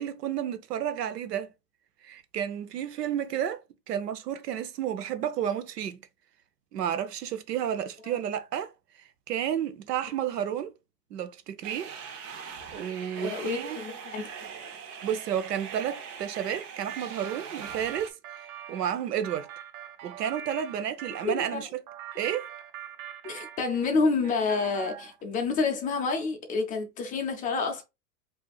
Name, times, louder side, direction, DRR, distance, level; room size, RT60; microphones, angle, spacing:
voice 1, 0.0-1.5 2.0-3.6 3.9-6.0 6.7-8.7 9.3-10.7 11.1-11.9 12.7-13.8 15.0-18.2 18.7-19.5 20.0-21.7 22.2-22.5, right 9 dB, 90° right, 0.8 m, -31 dB
sound 1, 11.6-18.1, right 6 dB, 50° right, 1.0 m, -41 dB
voice 2, 13.2-14.5 21.2-21.6 23.2-27.8, left 4 dB, 20° left, 0.5 m, -29 dB
sound 2, 16.9-21.3 21.9-24.0 24.2-25.2, right 10 dB, 35° right, 0.4 m, -43 dB
4.8 x 2.7 x 2.3 m
hypercardioid pair, 130°, 47 cm